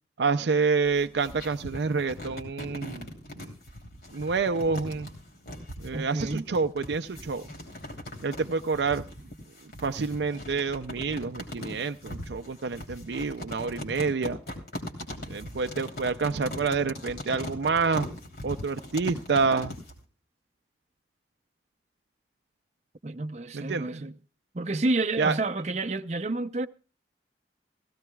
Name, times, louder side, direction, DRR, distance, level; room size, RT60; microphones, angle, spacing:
voice 1, 0.2-3.5 4.1-5.1 5.8-7.5 8.2-9.0 9.8-14.4 15.3-18.1 18.4-19.7 23.5-24.0 25.2-25.4, right 4 dB, 80° right, 0.5 m, -28 dB
sound 1, 0.8-20.0, left 1 dB, 60° left, 3.1 m, -40 dB
voice 2, 5.9-6.5 23.0-24.2 24.5-26.7, right 2 dB, 40° right, 0.6 m, -29 dB
16.5 x 16.0 x 2.3 m
head